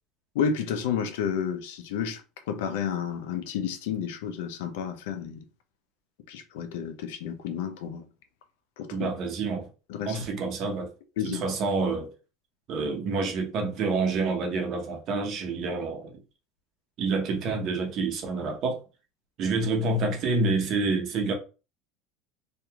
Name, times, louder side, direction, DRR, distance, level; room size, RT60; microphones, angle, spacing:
voice 1, 0.3-5.4 6.3-8.0 8.8-9.1 9.9-10.2 11.2-11.4, left 7 dB, 80° left, 0.5 m, -31 dB
voice 2, 8.9-9.7 10.1-10.9 11.2-12.1 12.7-16.2 17.0-18.8 19.4-21.3, right 3 dB, 55° right, 0.9 m, -28 dB
2.8 x 2.5 x 2.3 m
supercardioid pair, 95°, 0 cm